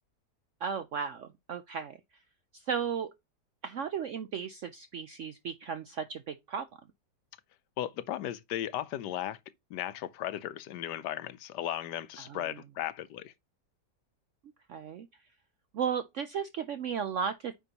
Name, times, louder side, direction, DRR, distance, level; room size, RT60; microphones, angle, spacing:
voice 1, 0.6-2.0 2.5-3.1 3.6-6.7 12.3-12.4 14.7-15.1 15.7-17.6, right 7 dB, 70° right, 0.7 m, -35 dB
voice 2, 7.8-9.4 9.7-13.3, left 12 dB, 75° left, 1.2 m, -36 dB
9.2 x 5.2 x 2.9 m
omnidirectional pair, 1.9 m